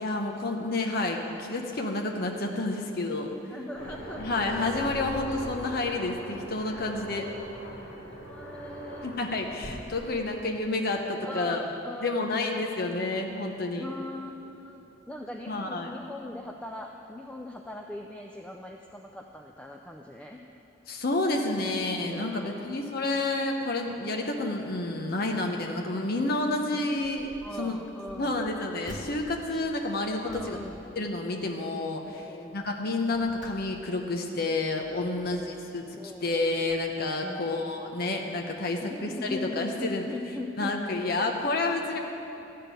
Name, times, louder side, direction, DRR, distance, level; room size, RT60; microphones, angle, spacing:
voice 1, 0.0-3.4 4.2-7.3 9.0-11.6 12.0-13.9 15.5-15.9 20.9-27.3 27.6-27.8 28.2-30.6 31.0-35.9 36.2-40.0 40.6-42.0, left 2 dB, 50° left, 2 dB, 0.9 m, -29 dB
voice 2, 3.5-4.2 8.2-9.2 11.2-12.3 13.8-14.8 15.1-20.4 21.6-21.7 22.0-22.7 27.4-28.3 30.2-30.8 32.2-32.6 35.0-35.6 36.0-36.3 37.2-37.6 38.6-40.7, left 1 dB, 5° left, 1 dB, 0.4 m, -40 dB
Aircraft, 3.7-10.8, equal, 75° left, 2.9 m, -41 dB
sound 1, 26.9-27.6 28.0-31.7 32.1-32.4 32.9-34.2 34.7-35.6 36.3-36.4 36.7-36.8, equal, 40° right, 1.6 m, -50 dB
13.5 x 6.6 x 9.0 m, 3.0 s
head